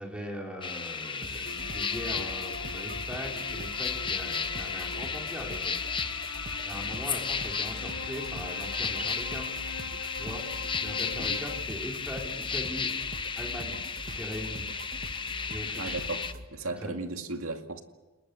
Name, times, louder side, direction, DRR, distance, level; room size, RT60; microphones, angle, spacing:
voice 1, 0.0-5.9 6.6-9.6 10.2-10.4 10.8-13.1 13.4-14.7 15.5-16.0 16.6-16.9, equal, 5° right, 1 dB, 4.3 m, -40 dB
sound 1, 0.6-16.3, left 6 dB, 20° left, 0.9 m, -34 dB
sound 2, 1.2-16.5, right 1 dB, 40° right, 1.5 m, -43 dB
sound 3, 1.4-11.6, left 5 dB, 75° left, 1.1 m, -43 dB
voice 2, 15.8-17.8, right 3 dB, 70° right, 5 dB, 2.3 m, -36 dB
29.5 x 20.5 x 7.1 m, 1.2 s
head